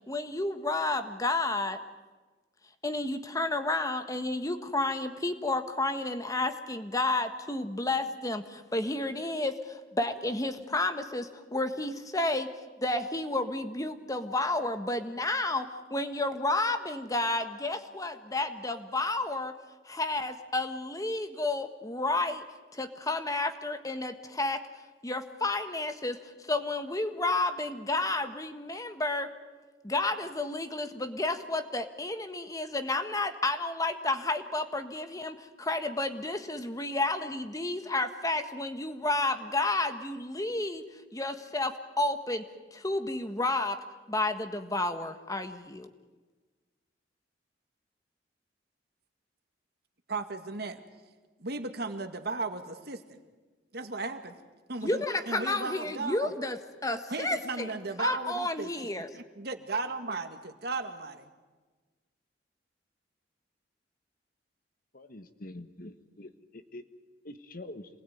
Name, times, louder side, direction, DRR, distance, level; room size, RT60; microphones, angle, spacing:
voice 1, 0.1-1.8 2.8-12.5 12.8-19.5 19.8-22.4 22.7-24.6 25.0-29.3 29.8-40.8 41.1-42.4 42.7-43.8 44.1-45.9 54.8-57.7 58.0-59.1, left 2 dB, 20° left, 8 dB, 1.5 m, -31 dB
voice 2, 50.1-50.8 51.4-53.2 53.7-54.3 54.7-56.3 57.1-58.7 59.1-61.3, right 3 dB, 60° right, 7 dB, 2.0 m, -35 dB
voice 3, 64.9-66.8 67.2-67.9, left 1 dB, 50° left, 9 dB, 1.5 m, -45 dB
27.5 x 20.5 x 9.4 m, 1.3 s
head